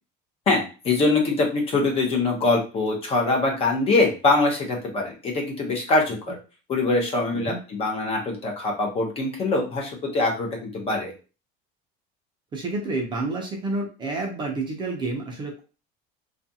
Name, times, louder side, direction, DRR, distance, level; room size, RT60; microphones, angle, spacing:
voice 1, 0.5-6.4 6.7-11.1, left 3 dB, 30° left, 0 dB, 0.6 m, -23 dB
voice 2, 12.5-15.6, right 2 dB, 20° right, 0 dB, 0.5 m, -29 dB
2.4 x 2.3 x 2.6 m, 0.34 s
cardioid pair, 165°, 21 cm